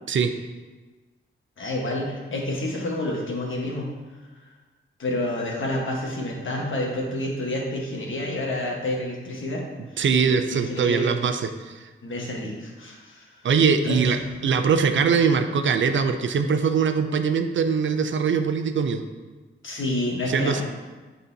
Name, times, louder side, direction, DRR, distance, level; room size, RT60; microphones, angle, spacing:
voice 1, 1.6-3.9 5.0-9.6 10.3-11.1 12.0-13.3 13.8-14.1 14.4-14.5 19.6-20.6, left 1 dB, 70° left, -1 dB, 1.3 m, -29 dB
voice 2, 10.0-11.7 13.4-14.2 14.4-19.0 20.3-20.6, right 6 dB, 65° right, 8 dB, 0.5 m, -22 dB
9.3 x 4.2 x 2.7 m, 1.3 s
wide cardioid pair, 85°, 21 cm